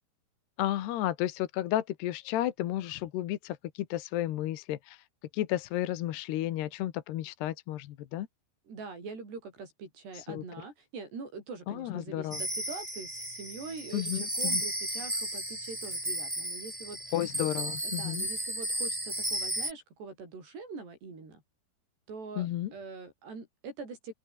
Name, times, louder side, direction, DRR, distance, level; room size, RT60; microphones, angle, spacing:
voice 1, 0.6-5.0 5.3-8.3 10.3-10.4 11.7-12.4 13.9-14.6 17.1-18.2 22.4-22.7, left 13 dB, 75° left, 3.4 m, -32 dB
voice 2, 8.7-17.2 17.8-21.4 22.1-24.1, right 4 dB, 75° right, 9.9 m, -44 dB
sound 1, 12.3-19.7, right 1 dB, 5° right, 5.9 m, -34 dB
open air
omnidirectional pair, 4.8 m